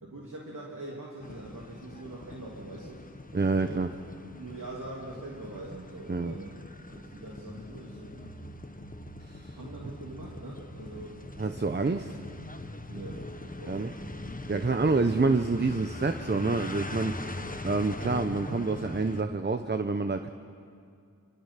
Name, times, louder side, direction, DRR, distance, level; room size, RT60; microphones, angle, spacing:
voice 1, 0.0-3.1 3.6-3.8 4.3-6.5 6.9-8.3 9.5-11.2 12.9-13.9, right 2 dB, 70° right, -4 dB, 3.1 m, -43 dB
sound 1, 1.2-19.2, left 2 dB, 25° left, 1.2 m, -42 dB
voice 2, 3.3-3.9 6.1-6.3 9.2-9.6 11.4-12.2 13.7-13.9 14.5-20.3, right 3 dB, 30° right, 8 dB, 0.9 m, -28 dB
sound 2, 8.0-16.9, right 3 dB, 85° right, 5.7 m, -52 dB
26.5 x 26.0 x 5.9 m, 2.3 s
wide cardioid pair, 65°, 33 cm